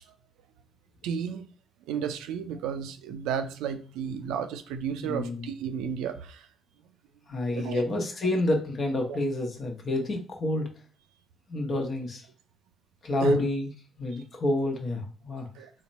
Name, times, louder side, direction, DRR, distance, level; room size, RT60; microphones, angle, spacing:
voice 1, 1.0-1.5 1.9-6.5 7.5-7.9 9.1-9.2 13.2-13.4 15.6-15.7, right 7 dB, 75° right, 0.4 m, -33 dB
voice 2, 5.0-5.5 7.3-10.7 11.5-12.2 13.0-13.7 14.0-15.5, left 1 dB, 55° left, 1.1 m, -28 dB
4.1 x 2.1 x 4.1 m
hypercardioid pair, 45°, 0 cm